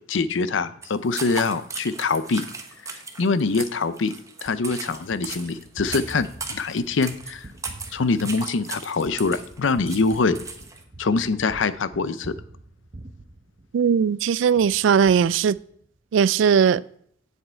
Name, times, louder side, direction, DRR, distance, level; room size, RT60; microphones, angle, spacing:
voice 1, 0.1-2.4 3.2-4.1 4.4-7.5 7.9-10.4 11.0-12.3, left 4 dB, 75° left, 0.6 m, -24 dB
sound 1, 0.8-10.8, right 4 dB, 15° right, 1.0 m, -37 dB
Gunshot gunfire, 4.5-14.1 14.6-16.0, right 1 dB, 35° right, 0.7 m, -45 dB
voice 2, 13.7-15.6 16.1-16.8, right 7 dB, 70° right, 0.3 m, -19 dB
8.4 x 7.8 x 4.4 m
head